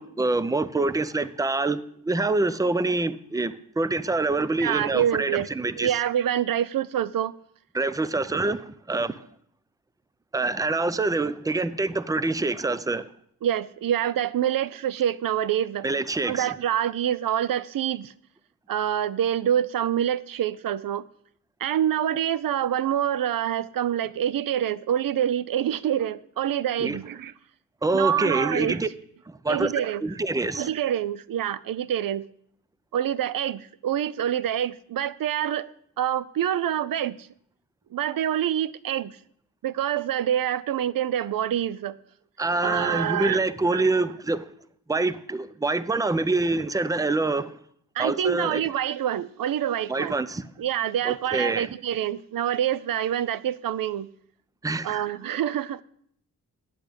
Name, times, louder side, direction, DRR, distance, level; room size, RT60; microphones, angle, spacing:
voice 1, 0.0-5.9 7.7-9.2 10.3-13.1 15.8-16.5 26.8-27.0 27.8-28.9 29.3-29.7 30.0-30.7 42.4-44.5 44.9-47.6 48.0-48.6 49.9-50.5 51.0-51.7 54.6-55.0, right 3 dB, 10° right, 0.5 m, -26 dB
voice 2, 4.6-5.5 5.8-7.3 13.4-15.9 16.2-18.1 18.7-21.0 21.6-27.3 27.9-28.8 29.5-30.0 30.5-32.3 32.9-35.7 36.0-37.2 37.9-39.2 39.6-42.0 42.6-43.4 43.7-43.9 47.9-50.1 50.6-54.1 54.8-55.8, right 10 dB, 70° right, 0.5 m, -26 dB
10.5 x 8.2 x 5.1 m
cardioid pair, 80°, 36 cm